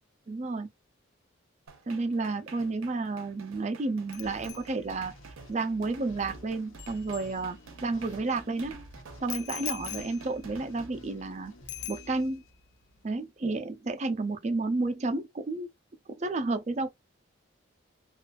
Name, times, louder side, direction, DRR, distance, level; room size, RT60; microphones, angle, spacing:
voice 1, 0.3-0.7 1.9-5.1 5.5-8.8 9.2-11.5 11.9-12.4 13.0-15.7 16.2-16.9, right 3 dB, 35° right, 0.4 m, -31 dB
sound 1, 1.7-10.9, right 5 dB, 80° right, 0.5 m, -50 dB
Bicycle bell, 4.1-8.0 9.3-11.3 11.7-12.6 12.8-13.1, left 14 dB, 55° left, 0.3 m, -43 dB
sound 2, 4.2-13.1, equal, 85° left, 0.9 m, -51 dB
2.4 x 2.3 x 2.3 m
head